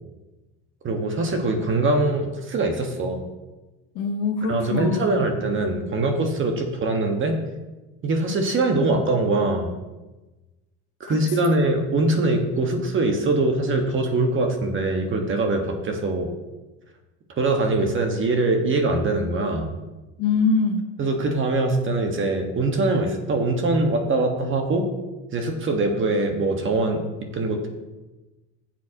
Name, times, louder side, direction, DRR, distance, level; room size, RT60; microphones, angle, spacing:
voice 1, 0.8-3.2 4.5-7.4 8.0-9.7 11.0-16.3 17.4-19.7 21.0-24.9 25.3-27.7, right 2 dB, 40° right, 3 dB, 1.5 m, -23 dB
voice 2, 3.9-5.2 11.1-11.5 20.2-20.9, left 4 dB, 75° left, 5 dB, 1.3 m, -24 dB
12.5 x 7.5 x 3.0 m, 1.1 s
cardioid pair, 105°, 31 cm